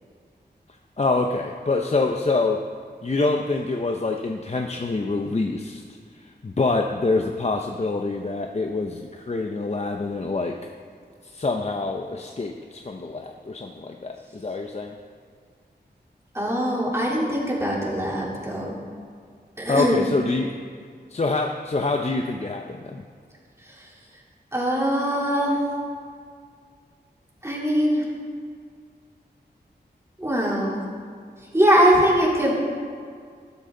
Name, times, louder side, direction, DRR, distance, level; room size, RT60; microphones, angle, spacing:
voice 1, 1.0-2.7 3.0-5.8 6.1-10.7 11.2-15.0 19.7-20.5 21.1-23.0, left 3 dB, 40° left, 3 dB, 0.7 m, -26 dB
voice 2, 16.3-18.7 19.6-20.1 24.5-25.6 27.4-28.0 30.2-30.8 31.5-32.5, equal, 15° right, -5 dB, 3.4 m, -21 dB
14.5 x 13.0 x 3.9 m, 2.1 s
wide cardioid pair, 95°, 18 cm